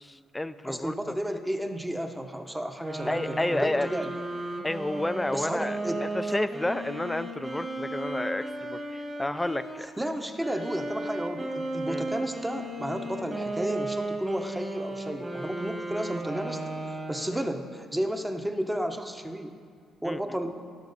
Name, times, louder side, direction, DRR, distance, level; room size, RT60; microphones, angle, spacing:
voice 1, 0.0-1.2 3.1-3.9 4.6-9.9 11.9-12.0 20.0-20.2, left 1 dB, 10° left, 13 dB, 0.4 m, -31 dB
voice 2, 0.6-4.2 5.3-6.0 9.8-16.6 16.9-19.6 20.0-20.6, equal, 10° right, 5 dB, 0.9 m, -32 dB
sound 1, 2.8-9.8 10.4-17.6, right 1 dB, 25° right, 1.7 m, -35 dB
17.5 x 6.0 x 4.0 m, 2.2 s
cardioid pair, 90°, 0 cm